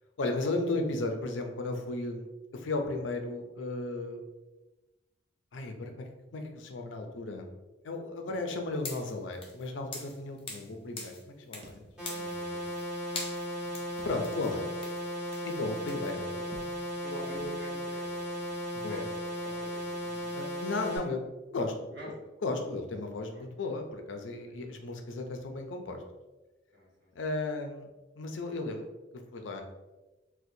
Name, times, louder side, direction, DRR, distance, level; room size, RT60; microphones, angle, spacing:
voice 1, 0.2-4.2 5.5-7.5 7.8-12.6 14.0-14.7 15.4-16.3 18.7-19.0 20.3-21.2 21.5-21.9 22.4-26.0 27.1-27.9 28.2-28.9 29.3-29.6, left 2 dB, 80° left, 4 dB, 0.5 m, -35 dB
sound 1, 8.8-10.7 11.0-11.7 12.0-12.8 13.1-16.1, left 3 dB, 30° left, 0.7 m, -43 dB
sound 2, 11.6-12.5 12.8-12.9 14.0-14.6 15.1-15.2 16.5-17.1 17.4-18.0, right 1 dB, 35° right, 0.6 m, -53 dB
sound 3, 12.0-21.0, equal, 5° right, 1.3 m, -36 dB
voice 2, 16.0-19.1 19.4-20.5 21.9-22.1 23.3-23.4 24.5-24.6 26.7-27.1, equal, 65° right, -5 dB, 1.2 m, -47 dB
4.2 x 2.2 x 2.7 m, 1.1 s
head